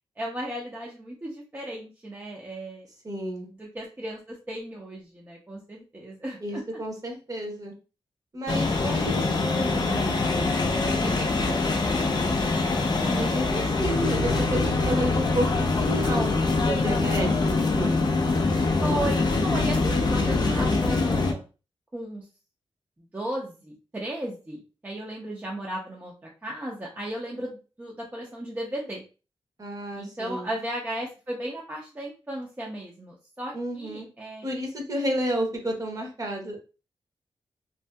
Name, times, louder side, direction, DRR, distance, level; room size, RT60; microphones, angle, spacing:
voice 1, 0.2-2.9 3.6-6.6 10.9-11.8 18.8-21.4 21.9-22.3 23.1-26.1 26.4-29.0 30.0-34.4, right 1 dB, 20° right, -3 dB, 0.5 m, -35 dB
voice 2, 3.0-3.5 6.4-7.7 8.3-10.2 13.0-16.3 16.6-18.0 29.6-30.5 33.5-34.1 34.4-36.6, equal, 35° right, 0 dB, 0.9 m, -31 dB
sound 1, 8.5-21.3, left 3 dB, 45° left, 0.5 m, -24 dB
2.6 x 2.6 x 2.2 m, 0.33 s
wide cardioid pair, 100°, 10 cm